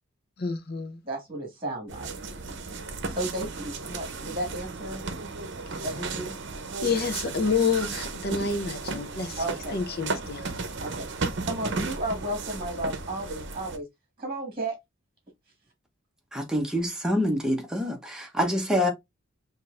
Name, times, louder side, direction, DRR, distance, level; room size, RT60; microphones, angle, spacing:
voice 1, 0.4-1.0 6.8-9.4 9.7-10.5, left 5 dB, 50° left, 0.7 m, -28 dB
voice 2, 1.0-2.1 3.1-5.0 5.8-6.3 9.4-9.8 10.8-13.8 14.2-14.8, right 1 dB, 25° right, 1.6 m, -33 dB
sound 1, 1.9-13.8, right 3 dB, 60° right, 0.7 m, -34 dB
voice 3, 16.3-18.9, equal, 5° right, 0.9 m, -26 dB
6.0 x 2.7 x 2.4 m
head